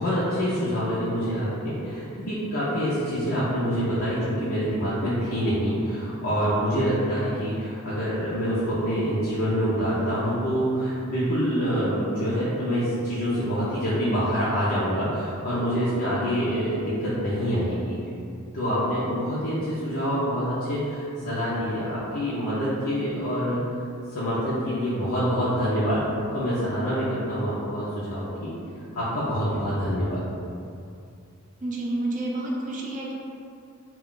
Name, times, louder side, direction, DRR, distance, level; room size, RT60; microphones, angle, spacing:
voice 1, 0.0-18.0 18.5-23.6 24.1-28.5 28.9-30.2, equal, 70° left, -11 dB, 0.6 m, -26 dB
voice 2, 31.6-33.1, right 1 dB, 40° right, -3 dB, 0.5 m, -29 dB
2.4 x 2.3 x 3.6 m, 2.4 s
head